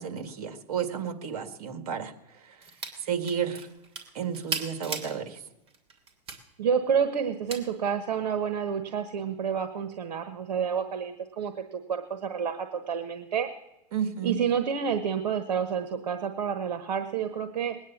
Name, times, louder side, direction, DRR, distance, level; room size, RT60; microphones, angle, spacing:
voice 1, 0.0-2.1 2.4-2.6 3.0-3.7 4.1-5.4 13.9-14.4, right 7 dB, 65° right, 7 dB, 2.2 m, -32 dB
sound 1, 2.6-3.0 3.2-5.2 5.7-6.4 7.5-7.6, right 4 dB, 30° right, 2.9 m, -36 dB
voice 2, 6.6-13.5 14.2-17.7, right 7 dB, 85° right, 7 dB, 1.2 m, -29 dB
20.5 x 9.7 x 7.1 m, 0.93 s
hypercardioid pair, 125°, 21 cm